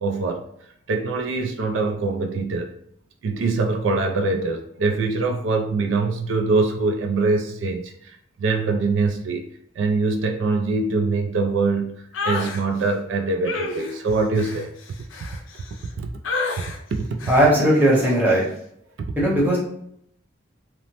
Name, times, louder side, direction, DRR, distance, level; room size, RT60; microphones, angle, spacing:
voice 1, 0.0-0.4 0.9-2.7 3.2-9.5 9.8-11.9 12.2-14.7 16.0-16.1 16.9-17.3 19.0-19.1, right 3 dB, 80° right, 4 dB, 0.3 m, -23 dB
sound 1, 12.1-12.6 13.4-15.9 16.2-16.8 17.2-17.5 17.9-18.2, left 3 dB, 85° left, 0.4 m, -30 dB
voice 2, 17.3-18.4 19.2-19.6, right 1 dB, 10° right, -6 dB, 0.7 m, -17 dB
2.8 x 2.0 x 2.9 m, 0.72 s
head